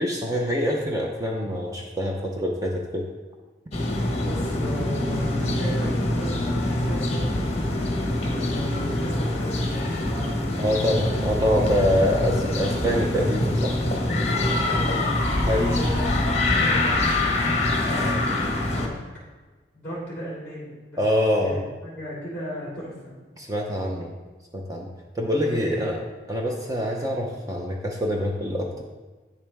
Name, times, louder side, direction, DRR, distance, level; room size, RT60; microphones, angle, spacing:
voice 1, 0.0-3.1 10.6-13.7 15.5-15.8 21.0-21.6 23.4-24.1 24.5-24.9 25.1-26.0 26.3-28.8, equal, 20° right, 0 dB, 0.8 m, -25 dB
sound 1, 3.7-18.9, left 1 dB, 35° left, 1.2 m, -24 dB
voice 2, 4.2-7.3 8.3-10.6 14.1-17.3 17.7-19.0 19.7-21.0 21.4-23.2 25.5-25.9, left 1 dB, 10° left, -8 dB, 3.0 m, -36 dB
9.2 x 7.2 x 3.5 m, 1.3 s
head